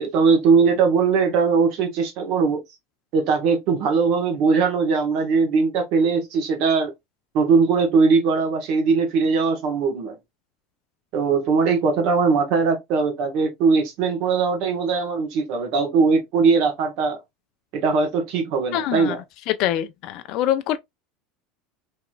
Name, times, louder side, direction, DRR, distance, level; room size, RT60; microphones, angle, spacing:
voice 1, 0.0-2.6 3.1-6.9 7.3-10.2 11.1-17.2 17.7-19.2, right 5 dB, 60° right, 1.4 m, -20 dB
voice 2, 18.7-19.1 19.5-20.8, left 12 dB, 60° left, 0.4 m, -24 dB
3.5 x 2.9 x 2.3 m
hypercardioid pair, 95°, 0 cm